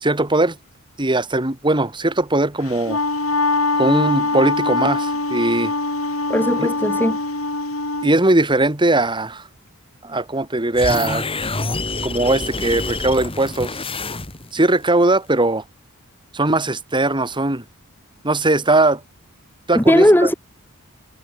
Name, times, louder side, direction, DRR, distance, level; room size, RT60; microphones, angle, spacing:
voice 1, 0.0-0.6 1.0-3.0 3.8-5.7 6.6-6.7 8.0-9.4 10.0-11.2 12.0-13.8 14.5-15.6 16.3-17.6 18.2-19.0 19.7-20.3, right 2 dB, 20° right, 2.3 m, -19 dB
Wind instrument woodwind instrument, 2.7-8.1, left 3 dB, 75° left, 6.7 m, -22 dB
voice 2, 6.3-7.2 19.7-20.3, equal, 10° left, 5.1 m, -16 dB
sound 1, 10.7-14.6, left 3 dB, 25° left, 6.2 m, -27 dB
head